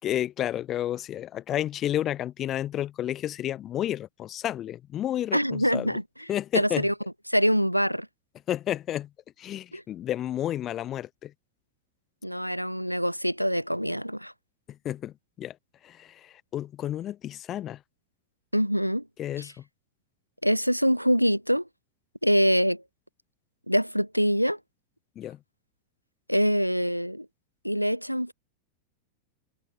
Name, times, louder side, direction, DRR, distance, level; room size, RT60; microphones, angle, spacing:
voice 1, 0.0-6.0 6.3-6.9 8.5-9.1 9.4-11.3 14.7-15.6 15.8-17.8 19.2-19.6 25.2-25.4, left 12 dB, 30° left, 4.2 m, -31 dB
voice 2, 5.3-6.0 6.5-6.9 7.3-8.1 9.7-9.8 12.2-14.3 18.5-19.0 19.4-19.5 20.4-21.6 22.2-22.8 23.7-24.6 26.3-27.2 27.6-28.3, equal, 90° right, 1.6 m, -24 dB
figure-of-eight pair, 90°, 0 cm